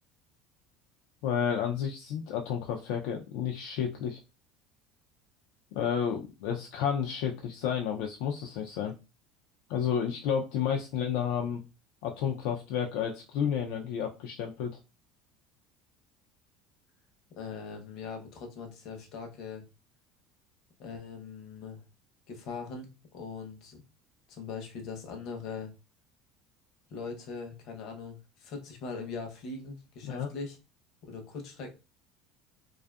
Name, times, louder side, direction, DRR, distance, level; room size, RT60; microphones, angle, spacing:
voice 1, 1.2-4.2 5.7-8.9 9.7-11.6 12.0-14.8 30.0-30.3, left 8 dB, 75° left, 2 dB, 0.4 m, -31 dB
voice 2, 17.4-19.6 20.8-21.8 22.3-23.8 24.3-25.7 26.9-30.6 31.0-31.7, left 5 dB, 55° left, 3 dB, 0.7 m, -41 dB
2.5 x 2.4 x 2.3 m, 0.29 s
cardioid pair, 145°, 0 cm